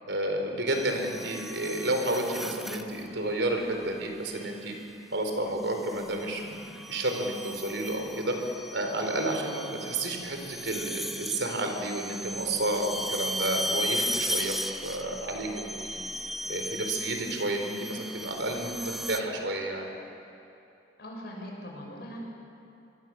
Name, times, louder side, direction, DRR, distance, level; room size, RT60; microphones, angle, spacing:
voice 1, 0.1-4.7 5.1-8.4 8.7-16.0 16.5-19.9, right 1 dB, 75° right, 3 dB, 4.3 m, -31 dB
sound 1, 0.7-3.1 4.4-4.8 5.6-19.2, equal, ahead, 0.9 m, -36 dB
voice 2, 21.0-22.2, equal, 60° left, -1 dB, 6.0 m, -41 dB
25.5 x 23.0 x 7.7 m, 2.9 s
head